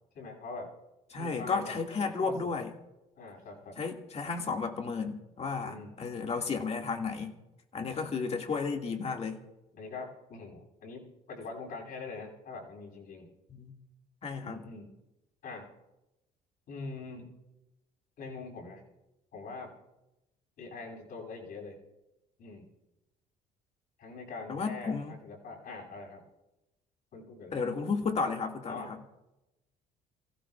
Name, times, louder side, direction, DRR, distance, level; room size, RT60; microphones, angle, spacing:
voice 1, 0.1-0.7 1.2-1.7 2.2-2.6 3.2-3.8 5.6-5.9 7.8-8.0 9.8-13.3 14.4-14.9 15.4-15.7 16.7-17.3 18.2-18.8 19.3-19.7 20.6-21.8 22.4-22.7 24.0-26.2 27.1-27.6 28.7-28.9, left 3 dB, 60° left, -1 dB, 7.4 m, -43 dB
voice 2, 1.1-2.7 3.8-7.4 7.7-9.4 13.5-13.7 14.2-14.6 24.5-25.2 27.5-29.0, left 4 dB, 40° left, 3 dB, 2.1 m, -33 dB
29.0 x 16.0 x 2.4 m, 0.96 s
cardioid pair, 110°, 17 cm